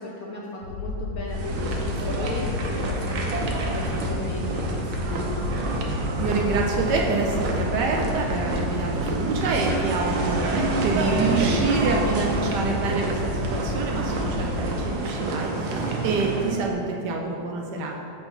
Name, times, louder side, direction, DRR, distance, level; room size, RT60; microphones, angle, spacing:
voice 1, 0.0-5.4, left 2 dB, 65° left, -3 dB, 0.9 m, -36 dB
sound 1, 0.6-14.8, left 3 dB, 90° left, 1.9 m, -32 dB
sound 2, 1.3-16.5, right 3 dB, 85° right, 1.6 m, -28 dB
voice 2, 6.2-18.0, right 4 dB, 70° right, 0 dB, 1.1 m, -27 dB
6.9 x 5.9 x 3.9 m, 2.7 s
omnidirectional pair, 2.2 m